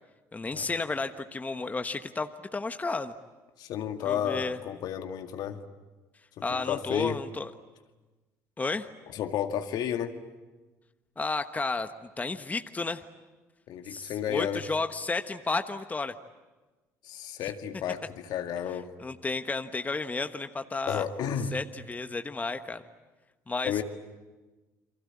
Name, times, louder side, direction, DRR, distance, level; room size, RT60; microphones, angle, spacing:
voice 1, 0.3-3.1 4.0-4.6 6.4-7.5 8.6-8.9 11.2-11.9 12.2-13.0 13.9-16.1 17.4-17.5 19.0-21.0 21.5-22.8 23.5-23.8, left 3 dB, 20° left, 8 dB, 1.2 m, -32 dB
voice 2, 3.6-5.6 6.4-7.2 9.1-10.1 13.7-14.6 17.0-18.9 20.9-21.6 23.6-23.8, left 9 dB, 60° left, 6 dB, 2.1 m, -32 dB
29.0 x 24.0 x 8.6 m, 1.2 s
hypercardioid pair, 65°, 8 cm